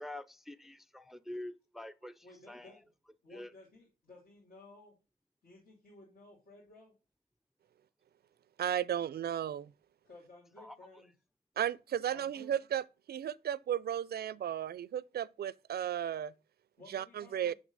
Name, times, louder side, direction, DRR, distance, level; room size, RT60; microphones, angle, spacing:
voice 1, 0.0-2.7 3.3-3.5 10.6-10.8, left 1 dB, ahead, 0.4 m, -46 dB
voice 2, 2.2-2.9 3.2-5.0 5.4-6.9 10.0-11.1 12.1-12.5 16.8-17.6, left 2 dB, 80° left, 2.9 m, -56 dB
voice 3, 8.6-9.7 11.6-12.8 13.1-16.3 16.9-17.5, right 10 dB, 80° right, 0.4 m, -34 dB
6.2 x 6.1 x 3.9 m
wide cardioid pair, 105°, 16 cm